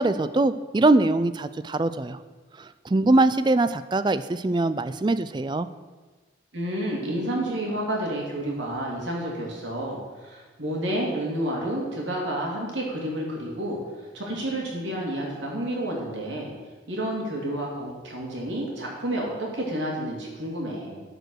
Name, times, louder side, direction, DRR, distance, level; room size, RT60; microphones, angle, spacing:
voice 1, 0.0-2.2 2.6-5.7, right 2 dB, 25° right, 13 dB, 0.3 m, -22 dB
voice 2, 6.5-13.8 14.1-16.5 16.9-21.0, right 1 dB, 85° right, -2 dB, 2.9 m, -30 dB
12.0 x 5.2 x 6.4 m, 1.3 s
head